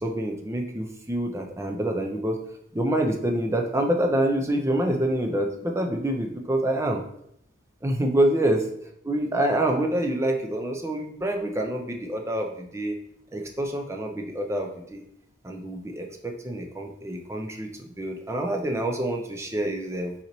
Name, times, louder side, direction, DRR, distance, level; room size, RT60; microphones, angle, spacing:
voice 1, 0.0-2.4 2.7-7.0 7.8-8.6 9.0-13.0 13.3-15.0 15.4-20.1, right 1 dB, 15° right, 3 dB, 0.4 m, -26 dB
4.1 x 3.0 x 3.9 m, 0.74 s
head